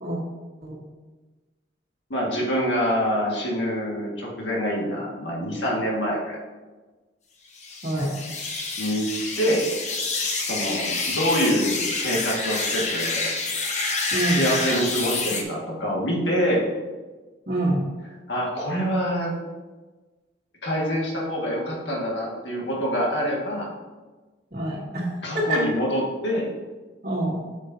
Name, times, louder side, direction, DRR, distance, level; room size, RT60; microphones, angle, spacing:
voice 1, 2.1-6.4 8.8-9.1 9.4-9.6 10.4-13.3 14.3-16.7 18.3-19.4 20.6-23.7 25.2-26.5, equal, 75° left, -3 dB, 1.9 m, -25 dB
sound 1, 7.6-15.4, left 3 dB, 35° left, 0.8 m, -28 dB
voice 2, 14.1-14.4 17.5-17.8 24.5-25.0 25.3-25.4 27.0-27.4, right 1 dB, 45° right, -8 dB, 1.4 m, -26 dB
8.1 x 7.2 x 2.8 m, 1.2 s
head